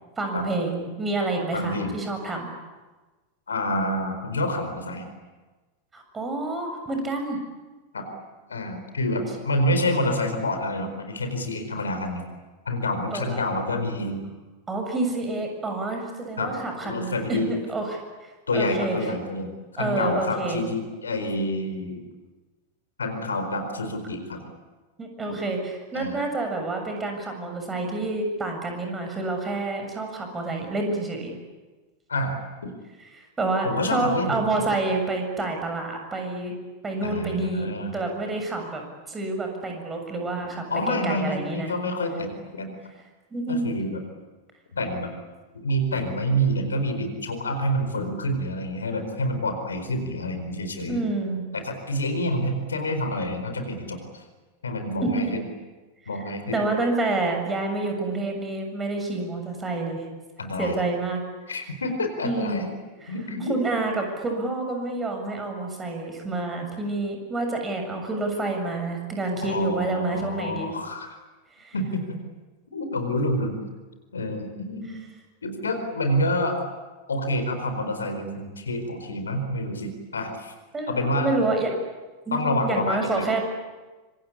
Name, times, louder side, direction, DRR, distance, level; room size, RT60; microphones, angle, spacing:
voice 1, 0.2-2.5 5.9-7.4 13.1-13.4 14.7-19.0 19.8-20.6 25.0-31.3 33.1-36.5 36.8-37.7 37.9-41.7 43.3-43.7 50.9-51.5 55.0-55.3 56.5-60.0 60.6-61.2 62.2-62.6 63.0-63.1 63.5-70.7 71.6-71.8 80.7-80.9 81.2-81.7 82.3-83.4, right 2 dB, 15° right, 3 dB, 7.2 m, -28 dB
voice 2, 1.5-1.9 3.5-5.1 7.9-8.1 8.5-12.2 12.6-14.2 16.4-16.5 16.8-17.5 18.5-19.5 19.8-22.0 23.0-24.4 25.2-25.4 25.9-26.2 32.1-32.7 33.6-34.7 37.0-37.9 40.7-42.8 43.5-44.0 44.7-45.1 45.5-51.0 51.5-54.2 54.6-55.4 56.1-56.6 60.4-60.8 61.5-62.7 63.1-63.6 69.4-71.1 71.7-72.2 72.7-73.6 74.1-75.0 75.4-76.6 77.1-80.5 80.9-81.3 82.3-83.3, left 1 dB, 70° left, 6 dB, 4.5 m, -28 dB
26.0 x 25.5 x 8.5 m, 1.2 s
figure-of-eight pair, 90°, 0 cm